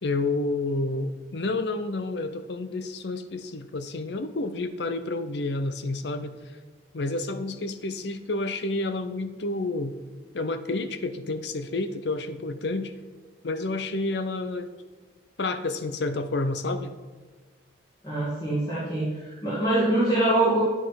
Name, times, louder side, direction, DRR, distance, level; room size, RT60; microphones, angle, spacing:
voice 1, 0.0-6.4 6.9-9.9 10.3-12.9 13.4-14.7 15.4-17.0, left 2 dB, 60° left, 11 dB, 0.7 m, -29 dB
voice 2, 18.0-20.6, right 1 dB, 20° left, -8 dB, 2.3 m, -24 dB
9.9 x 7.3 x 5.9 m, 1.4 s
head